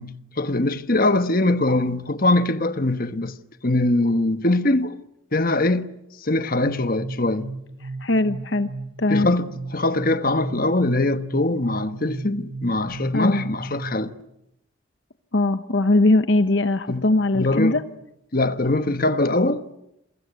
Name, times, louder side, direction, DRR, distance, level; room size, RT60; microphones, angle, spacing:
voice 1, 0.0-3.3 3.6-5.0 5.3-7.5 9.1-14.1 16.9-17.0 17.3-17.8 18.3-19.6, left 2 dB, 45° left, 1.3 m, -22 dB
sound 1, 6.6-14.2, right 3 dB, 65° right, 1.2 m, -36 dB
voice 2, 8.0-8.7 9.0-9.4 13.1-13.4 15.3-17.8, left 2 dB, 60° left, 1.0 m, -20 dB
28.5 x 23.5 x 8.1 m
head